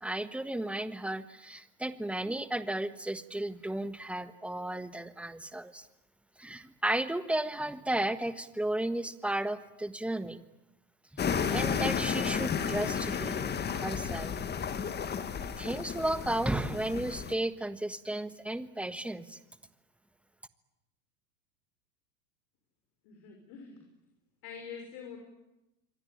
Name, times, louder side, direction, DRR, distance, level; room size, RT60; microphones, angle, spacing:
voice 1, 0.0-5.9 6.4-10.4 11.1-14.4 15.6-19.4, right 1 dB, 5° right, 11 dB, 1.3 m, -34 dB
sound 1, 11.2-17.3, left 7 dB, 20° left, 1.8 m, -32 dB
voice 2, 23.0-23.8 24.4-25.2, left 6 dB, 50° left, 3 dB, 6.3 m, -45 dB
27.5 x 23.5 x 8.8 m, 0.93 s
hypercardioid pair, 115°, 48 cm